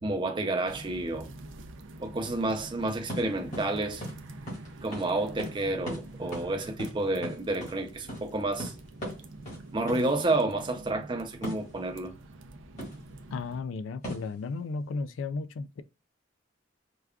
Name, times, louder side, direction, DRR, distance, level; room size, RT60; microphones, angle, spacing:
voice 1, 0.0-1.3 2.0-4.0 4.8-8.7 9.7-12.1, right 2 dB, 25° right, 0.5 m, -30 dB
sound 1, 0.7-13.6, right 2 dB, 75° right, 0.5 m, -46 dB
sound 2, 3.1-3.2 3.5-3.7 4.0-4.1 4.5-4.7 4.9-5.0 5.4-5.5 5.9-6.0 6.3-6.5 6.8-7.7 8.1-8.2 8.6-8.8 9.0-9.2 9.4-9.6 9.9-10.0 11.4-11.7 12.8-13.0 14.0-14.3, equal, 35° left, 1.9 m, -37 dB
voice 2, 13.3-15.8, left 4 dB, 80° left, 0.3 m, -34 dB
4.8 x 2.3 x 2.2 m
head